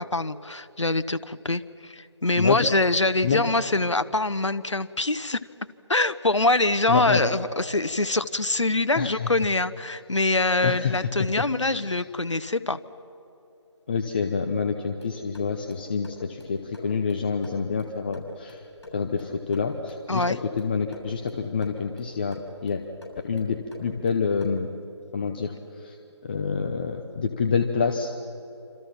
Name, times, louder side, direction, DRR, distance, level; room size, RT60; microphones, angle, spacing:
voice 1, 0.0-5.4 5.9-12.8 20.1-20.4, left 2 dB, 80° left, 12 dB, 1.1 m, -24 dB
voice 2, 6.9-7.2 9.0-9.3 10.6-11.1 11.4-12.0 13.9-18.6 18.9-22.4 22.6-22.8 23.2-24.7 25.1-26.0 26.2-28.1, left 5 dB, 20° left, 5 dB, 0.8 m, -27 dB
sound 1, 15.0-24.7, left 1 dB, 60° left, 7.5 m, -47 dB
27.5 x 27.0 x 5.8 m, 2.9 s
figure-of-eight pair, 160°, 15 cm